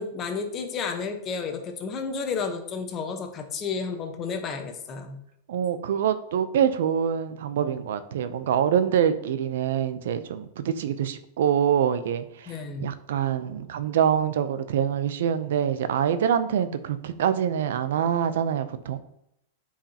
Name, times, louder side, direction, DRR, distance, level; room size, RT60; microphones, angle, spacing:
voice 1, 0.0-5.2 12.5-12.9, left 5 dB, 25° left, 5 dB, 1.0 m, -32 dB
voice 2, 5.5-19.0, right 9 dB, 75° right, 12 dB, 0.5 m, -25 dB
8.8 x 4.8 x 2.8 m, 0.79 s
supercardioid pair, 145°, 0 cm